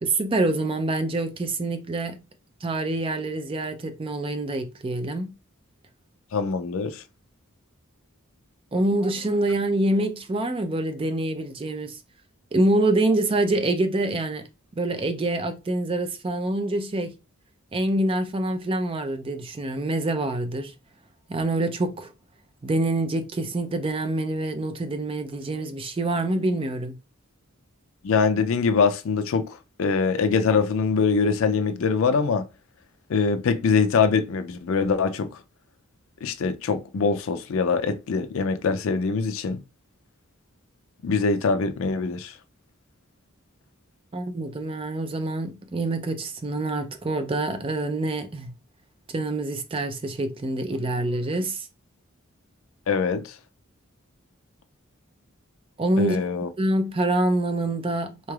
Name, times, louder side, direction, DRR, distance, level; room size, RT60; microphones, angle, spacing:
voice 1, 0.0-2.2 2.6-5.3 8.7-12.0 12.5-14.4 14.8-17.1 17.7-20.7 21.3-22.1 22.6-27.0 44.1-48.5 49.1-51.7 55.8-56.2 56.6-58.3, right 2 dB, 25° right, 0.4 m, -26 dB
voice 2, 6.3-7.0 28.0-32.5 33.1-35.4 36.2-39.6 41.0-42.4 52.9-53.3 56.0-56.5, left 5 dB, 70° left, 0.4 m, -23 dB
3.8 x 3.2 x 2.3 m
head